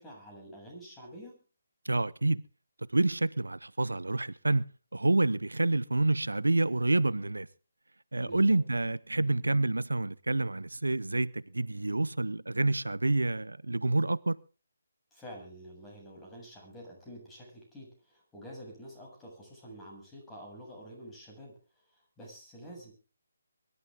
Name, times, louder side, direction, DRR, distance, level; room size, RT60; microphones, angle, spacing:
voice 1, 0.0-1.4 8.2-8.6 15.1-21.5 22.2-22.9, equal, 10° left, 7.4 m, -48 dB
voice 2, 1.8-2.4 2.9-4.6 4.9-7.5 8.1-14.4, right 2 dB, 80° right, 0.6 m, -28 dB
24.0 x 12.0 x 3.7 m
figure-of-eight pair, 145°, 0 cm